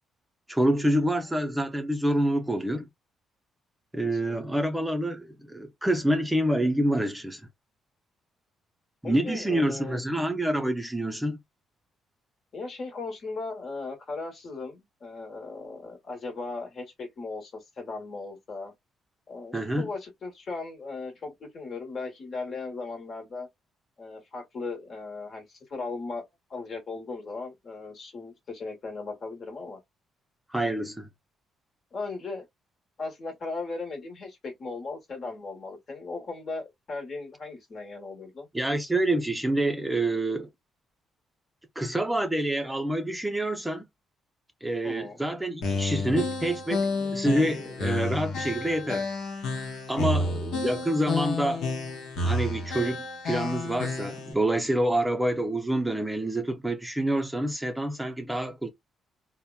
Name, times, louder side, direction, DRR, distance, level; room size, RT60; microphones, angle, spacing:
voice 1, 0.5-2.9 3.9-7.4 9.0-11.4 19.5-19.9 30.5-31.1 38.5-40.5 41.8-43.9 44.6-49.1 49.9-51.6 52.2-58.7, right 1 dB, 5° right, 0.5 m, -27 dB
voice 2, 9.0-10.0 12.5-18.7 19.3-23.5 24.0-26.2 26.5-29.8 31.9-32.4 33.0-38.5 44.8-45.2 50.0-50.3, left 3 dB, 50° left, 1.2 m, -37 dB
sound 1, 45.6-54.3, left 2 dB, 80° left, 0.9 m, -30 dB
2.8 x 2.1 x 2.2 m
cardioid pair, 90°, 0 cm